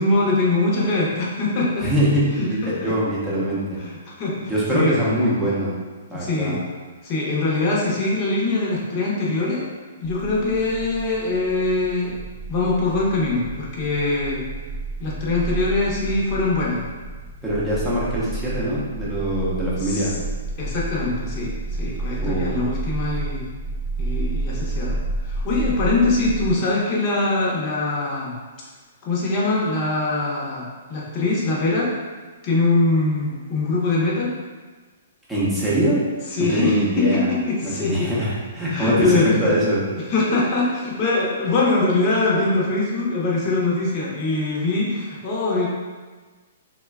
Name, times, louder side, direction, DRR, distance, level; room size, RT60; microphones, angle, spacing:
voice 1, 0.0-1.9 2.4-2.9 3.8-5.0 6.1-6.6 7.0-9.7 10.0-12.1 12.5-14.4 15.0-16.8 19.8-20.1 20.6-23.5 24.0-28.3 29.0-31.9 32.4-34.3 36.3-38.1 38.7-39.5 40.1-45.7, left 2 dB, 35° left, -5 dB, 0.9 m, -23 dB
voice 2, 1.8-3.6 4.4-5.7 6.1-6.6 17.4-20.1 22.2-22.7 35.3-36.0 36.4-37.3 37.6-39.8, equal, 5° right, -9 dB, 0.9 m, -22 dB
sound 1, 10.2-26.5, right 3 dB, 35° right, 0.4 m, -30 dB
3.7 x 2.3 x 2.2 m, 1.4 s
hypercardioid pair, 135°, 0 cm